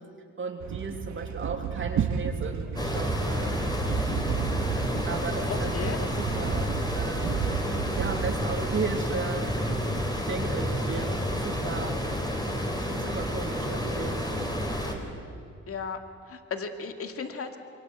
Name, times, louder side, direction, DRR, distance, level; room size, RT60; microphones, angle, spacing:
voice 1, 0.4-3.7 5.1-7.7 8.0-9.7 10.3-12.0 12.7-14.2, right 4 dB, 40° right, 3 dB, 2.9 m, -35 dB
sound 1, 0.6-10.1, right 7 dB, 70° right, 1.6 m, -33 dB
sound 2, 2.8-14.9, equal, 15° left, 4.2 m, -30 dB
voice 2, 5.5-6.0 13.7-14.0 15.7-16.0 16.3-17.6, left 5 dB, 50° left, 6 dB, 2.3 m, -35 dB
27.0 x 23.5 x 8.0 m, 2.3 s
cardioid pair, 90°, 30 cm